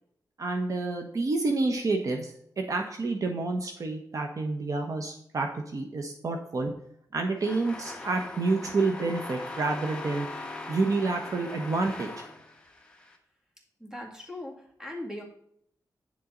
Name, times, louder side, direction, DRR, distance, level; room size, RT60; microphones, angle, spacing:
voice 1, 0.4-6.7 7.1-10.3 10.7-12.1, right 3 dB, 55° right, 4 dB, 1.1 m, -29 dB
sound 1, 7.4-13.2, left 2 dB, 15° left, 1.3 m, -40 dB
voice 2, 13.8-15.2, left 1 dB, 10° right, 0 dB, 2.2 m, -39 dB
9.3 x 7.1 x 3.9 m, 0.69 s
wide cardioid pair, 120°, 7 cm